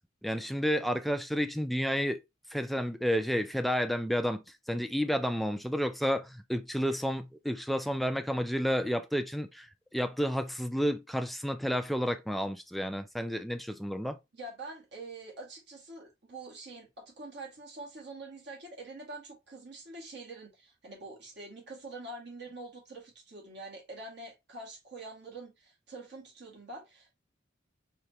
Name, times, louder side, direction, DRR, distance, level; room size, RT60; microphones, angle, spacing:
voice 1, 0.2-2.2 2.5-4.4 4.7-14.2, equal, ahead, 0.4 m, -31 dB
voice 2, 14.3-27.1, right 2 dB, 60° right, 2.1 m, -45 dB
4.8 x 3.3 x 2.9 m
head